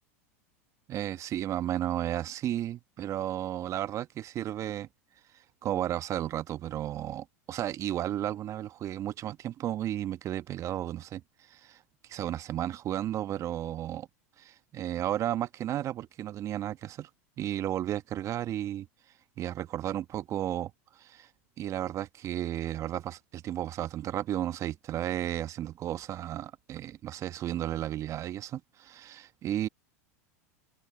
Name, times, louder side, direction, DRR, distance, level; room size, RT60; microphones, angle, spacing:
voice 1, 0.9-4.9 5.6-11.2 11.5-11.8 12.1-14.1 14.4-17.1 17.4-18.9 19.4-21.3 21.6-29.7, right 12 dB, 40° right, 1.1 m, -33 dB
hypercardioid pair, 95°, 8 cm